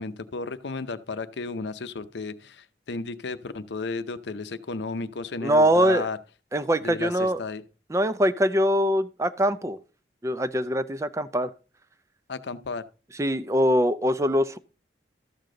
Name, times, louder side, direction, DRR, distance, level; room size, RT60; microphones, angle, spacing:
voice 1, 0.0-6.2 6.8-7.6 12.3-12.8, left 3 dB, 80° left, 0.6 m, -33 dB
voice 2, 5.4-6.1 6.5-7.4 7.9-9.8 10.2-11.5 13.2-14.6, equal, 15° right, 0.4 m, -23 dB
13.0 x 6.7 x 3.8 m
head